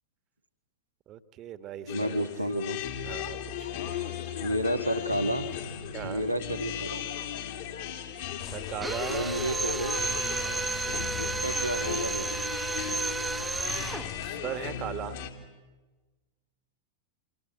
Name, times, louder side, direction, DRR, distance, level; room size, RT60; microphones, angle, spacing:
voice 1, 1.1-2.2 3.0-3.7 5.9-6.2 8.5-9.4 10.4-10.8 14.2-15.3, right 10 dB, 35° right, 12 dB, 1.6 m, -38 dB
sound 1, 1.9-15.3, left 9 dB, 55° left, 3.1 m, -37 dB
voice 2, 1.9-2.8 4.4-5.5 6.0-7.1 9.1-10.0 11.2-12.4, right 1 dB, 85° right, 6 dB, 1.6 m, -31 dB
sound 2, 8.4-14.3, left 11 dB, 35° left, 1.9 m, -43 dB
Drill, 8.8-14.1, right 3 dB, 10° right, 1.2 m, -32 dB
29.0 x 25.5 x 7.5 m, 1.3 s
figure-of-eight pair, 90°, 0 cm